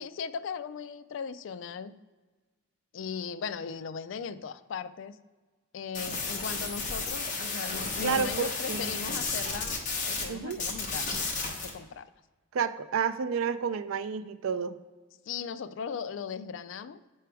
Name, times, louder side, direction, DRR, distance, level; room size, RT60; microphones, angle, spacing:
voice 1, 0.0-2.0 2.9-5.2 5.7-11.2 11.5-12.1 15.3-17.1, left 6 dB, 65° left, 13 dB, 0.3 m, -38 dB
sound 1, 5.9-10.3 10.5-11.7, left 4 dB, 40° left, 1.0 m, -33 dB
voice 2, 8.0-8.9 10.3-10.6 12.5-14.8, right 6 dB, 85° right, 12 dB, 0.4 m, -30 dB
5.9 x 4.6 x 4.7 m, 1.3 s
head